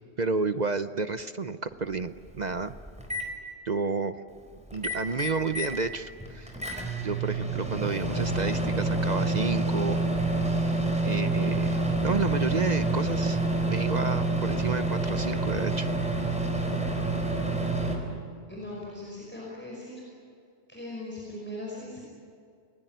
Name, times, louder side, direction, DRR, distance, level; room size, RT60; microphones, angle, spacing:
voice 1, 0.2-2.7 3.6-4.1 4.7-6.6 7.0-10.0 11.0-15.9, right 4 dB, 45° right, 11 dB, 0.8 m, -31 dB
Microwave oven, 1.7-1.8 2.3-3.3 4.7-5.8 6.2-18.0, right 2 dB, 5° right, 4.3 m, -28 dB
voice 2, 18.5-20.1 20.7-22.0, left 1 dB, 10° left, -5 dB, 5.3 m, -39 dB
29.5 x 20.5 x 9.2 m, 2.4 s
omnidirectional pair, 1.1 m